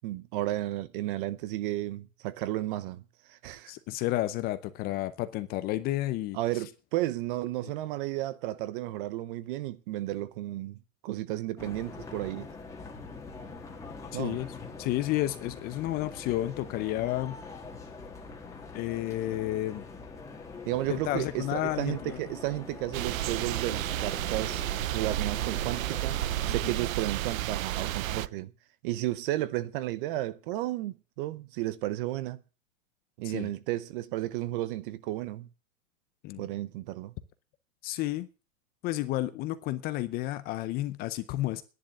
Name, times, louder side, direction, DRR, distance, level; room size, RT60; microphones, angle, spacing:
voice 1, 0.0-3.0 3.3-3.7 6.3-10.8 11.0-12.5 14.1-14.4 20.7-24.6 24.9-26.2 26.5-28.5 28.8-32.4 33.2-35.5 36.4-37.1, right 15 dB, 40° right, 0.8 m, -33 dB
voice 2, 3.7-6.4 14.1-14.5 14.8-17.4 18.7-19.8 20.9-22.2 26.5-26.6 33.2-33.5 36.2-36.4 37.8-38.3 38.8-41.6, left 15 dB, 25° left, 0.6 m, -31 dB
sound 1, 11.6-26.5, left 4 dB, 5° left, 1.8 m, -44 dB
sound 2, 22.9-28.3, right 14 dB, 80° right, 0.7 m, -31 dB
10.5 x 10.0 x 7.7 m
supercardioid pair, 150°, 40 cm